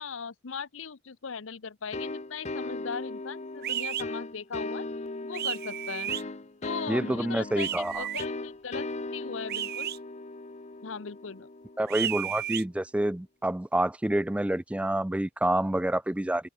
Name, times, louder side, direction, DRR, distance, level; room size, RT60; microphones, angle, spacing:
voice 1, 0.0-4.9 5.2-6.1 6.6-9.9 10.8-11.5, left 5 dB, 70° left, 0.8 m, -39 dB
sound 1, 1.9-12.4, left 2 dB, 35° left, 1.1 m, -38 dB
sound 2, 3.6-4.0 5.3-6.2 7.6-8.2 9.5-10.0 11.9-12.6, right 11 dB, 50° right, 0.7 m, -32 dB
voice 2, 6.9-8.0 11.8-16.5, right 1 dB, 5° right, 0.4 m, -28 dB
head